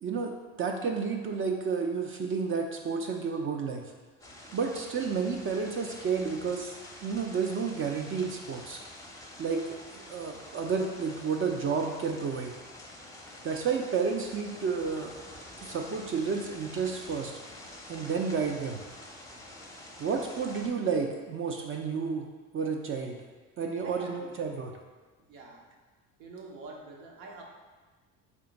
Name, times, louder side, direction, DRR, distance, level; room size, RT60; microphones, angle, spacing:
voice 1, 0.0-3.8 4.5-6.7 7.0-8.8 9.4-12.6 13.4-15.1 15.6-17.3 17.9-18.8 20.0-22.3 22.5-23.2 23.6-24.8, right 5 dB, 35° right, 2 dB, 0.4 m, -31 dB
sound 1, 4.2-20.7, left 1 dB, 10° left, 0.6 m, -47 dB
voice 2, 23.8-24.3 25.3-25.6 26.2-27.4, right 3 dB, 85° right, -1 dB, 0.9 m, -45 dB
3.5 x 2.8 x 3.9 m, 1.3 s
supercardioid pair, 75°, 37 cm